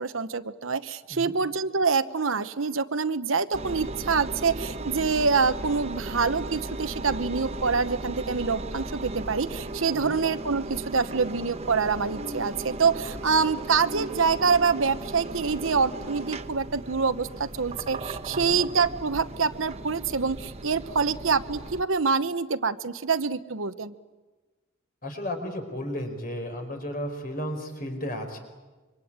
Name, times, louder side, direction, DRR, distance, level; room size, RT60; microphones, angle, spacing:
voice 1, 0.0-23.9, right 5 dB, 80° right, 11 dB, 1.0 m, -26 dB
Engine, 3.5-21.8, right 2 dB, 30° right, 1.0 m, -36 dB
voice 2, 25.0-28.4, equal, 45° left, 5 dB, 4.9 m, -34 dB
26.5 x 24.0 x 8.9 m, 1.3 s
head